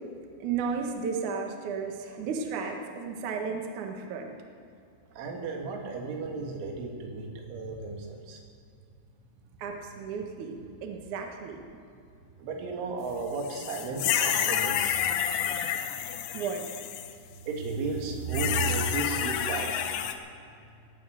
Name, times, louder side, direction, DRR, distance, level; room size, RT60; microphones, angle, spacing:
voice 1, 0.4-4.3 9.6-11.6 16.3-16.8, right 5 dB, 60° right, 3 dB, 2.2 m, -34 dB
voice 2, 5.2-8.4 12.4-15.1 15.4-15.7 17.4-19.9, right 4 dB, 80° right, 1 dB, 4.5 m, -34 dB
sound 1, 13.4-17.1 18.3-20.1, left 10 dB, 75° left, 2.9 m, -29 dB
19.5 x 9.2 x 7.9 m, 2.5 s
omnidirectional pair, 5.5 m